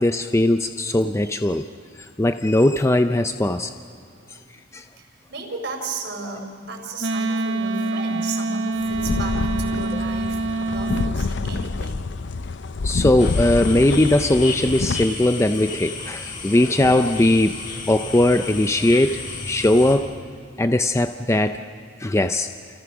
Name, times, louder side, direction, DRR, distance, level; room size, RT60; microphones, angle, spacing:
voice 1, 0.0-1.6 2.0-3.7 4.7-4.8 12.8-17.5 17.9-19.2 19.5-20.1 20.6-21.6 22.0-22.5, left 1 dB, 15° left, 8 dB, 0.6 m, -19 dB
voice 2, 4.1-4.6 4.9-12.1 16.3-16.5, right 3 dB, 65° right, 3 dB, 4.7 m, -34 dB
Wind instrument woodwind instrument, 7.0-11.2, right 2 dB, 80° right, 1.2 m, -25 dB
sound 1, 8.8-15.1, left 3 dB, 70° left, 0.6 m, -27 dB
sound 2, 13.2-20.0, left 4 dB, 45° left, 6.3 m, -33 dB
29.5 x 28.5 x 6.1 m, 2.3 s
head